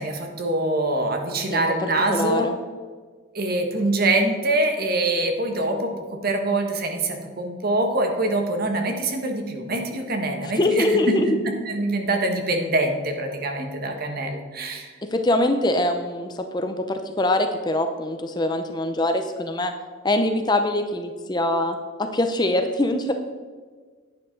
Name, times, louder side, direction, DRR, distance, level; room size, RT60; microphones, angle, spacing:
voice 1, 0.0-2.5 3.3-11.2 11.6-14.9, right 2 dB, 45° right, 4 dB, 1.4 m, -24 dB
voice 2, 2.1-2.5 10.6-11.3 15.1-16.3 16.5-19.7 20.0-23.1, left 1 dB, 20° left, 7 dB, 0.6 m, -23 dB
11.0 x 9.3 x 3.9 m, 1.5 s
head